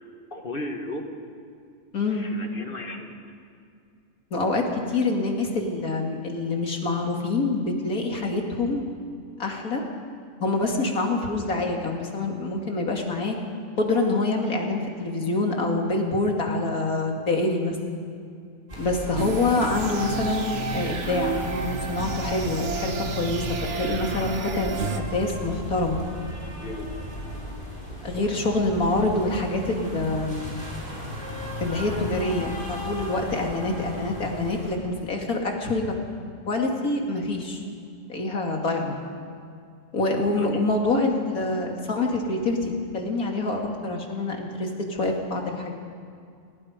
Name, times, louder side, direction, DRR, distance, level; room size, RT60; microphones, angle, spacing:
voice 1, 0.3-1.1 2.1-3.3 26.6-26.9 40.4-40.6, left 2 dB, 40° left, 3 dB, 2.0 m, -35 dB
voice 2, 1.9-2.3 4.3-8.8 9.4-9.8 10.4-13.4 13.8-17.8 18.8-23.4 23.8-26.0 28.0-30.6 31.6-35.8 36.5-37.6 38.1-39.0 39.9-45.7, left 2 dB, 75° left, 1 dB, 2.9 m, -26 dB
sound 1, 18.7-34.8, equal, 35° right, 4.4 m, -36 dB
sound 2, 19.1-25.0, right 4 dB, 55° right, 1.5 m, -31 dB
29.0 x 18.0 x 5.2 m, 2.4 s
omnidirectional pair, 1.5 m